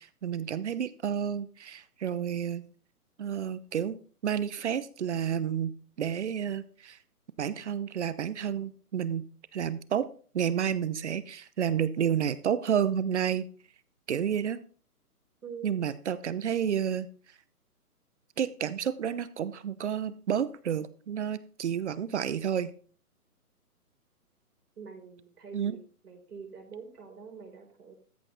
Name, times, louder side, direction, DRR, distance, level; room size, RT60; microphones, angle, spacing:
voice 1, 0.0-2.6 3.2-7.0 7.4-9.2 9.5-10.1 10.3-13.5 14.1-14.6 15.6-17.1 18.4-22.7 25.5-25.8, right 8 dB, 50° right, 16 dB, 0.8 m, -30 dB
voice 2, 15.4-15.7 24.8-27.9, right 6 dB, 75° right, 1 dB, 4.7 m, -45 dB
13.5 x 5.7 x 4.0 m, 0.41 s
hypercardioid pair, 160°, 46 cm